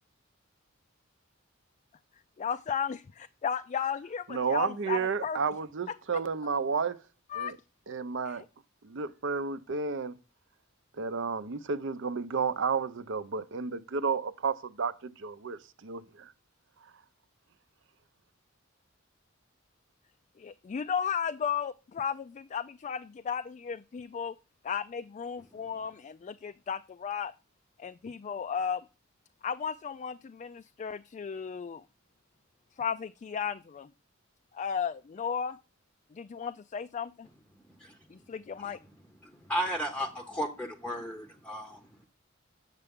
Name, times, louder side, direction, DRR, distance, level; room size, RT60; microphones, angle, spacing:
voice 1, 2.4-5.4 7.3-7.5 8.3-8.5 20.4-24.3 24.6-27.3 27.8-28.8 29.4-31.8 32.8-33.9 34.5-35.6 36.1-37.3 38.1-38.8, left 7 dB, 35° left, 0.3 m, -34 dB
voice 2, 4.3-7.0 7.4-7.6 7.9-8.4 8.8-10.2 11.0-16.3, right 5 dB, 65° right, 0.6 m, -32 dB
voice 3, 37.7-38.2 38.6-38.8 39.2-42.1, equal, 5° left, 0.7 m, -35 dB
8.1 x 6.7 x 3.6 m
head